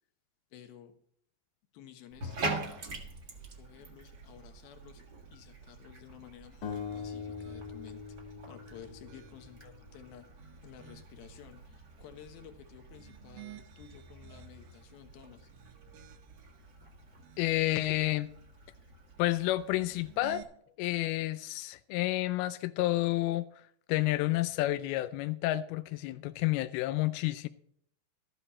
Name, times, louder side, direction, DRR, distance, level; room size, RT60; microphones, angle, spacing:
voice 1, 0.5-1.0 1.7-2.4 3.6-5.0 5.3-8.0 8.5-10.3 10.6-15.5, left 9 dB, 65° left, 2.9 m, -53 dB
Bathtub (filling or washing), 2.1-20.4, right 2 dB, 45° right, 1.3 m, -45 dB
sound 1, 6.6-9.8, left 6 dB, 50° left, 3.1 m, -42 dB
sound 2, 6.7-8.0 8.6-9.7 10.2-11.3 12.8-14.9 15.4-16.6 17.1-18.2 19.6-20.4, right 9 dB, 70° right, 2.5 m, -54 dB
voice 2, 17.4-18.3 19.2-20.4 20.8-23.5 23.9-27.5, left 17 dB, 85° left, 2.2 m, -30 dB
13.5 x 10.0 x 4.3 m
omnidirectional pair, 4.9 m